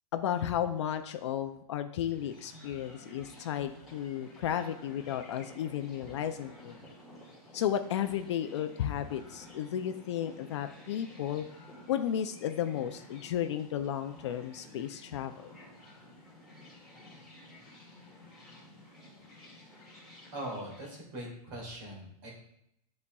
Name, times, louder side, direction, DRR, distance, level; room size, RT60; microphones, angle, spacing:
voice 1, 0.1-6.8 7.5-11.4 11.9-15.5, left 10 dB, 45° left, 8 dB, 0.4 m, -33 dB
sound 1, 2.0-20.9, left 1 dB, ahead, 1.9 m, -52 dB
voice 2, 20.3-22.3, right 1 dB, 35° right, -2 dB, 2.1 m, -41 dB
10.5 x 4.1 x 2.3 m, 0.76 s
supercardioid pair, 175°, 20 cm